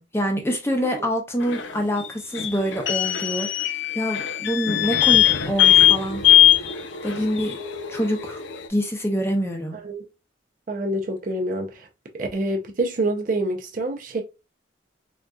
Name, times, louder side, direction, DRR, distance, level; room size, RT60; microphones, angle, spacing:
voice 1, 0.0-6.2 7.0-7.6 7.9-8.4 8.7-9.8, equal, 15° left, 0.6 m, -26 dB
sound 1, 1.4-8.7, left 12 dB, 75° left, 0.4 m, -20 dB
voice 2, 9.7-10.1 10.7-11.9 12.1-14.2, right 1 dB, 45° right, 0.5 m, -26 dB
3.6 x 2.6 x 2.2 m
head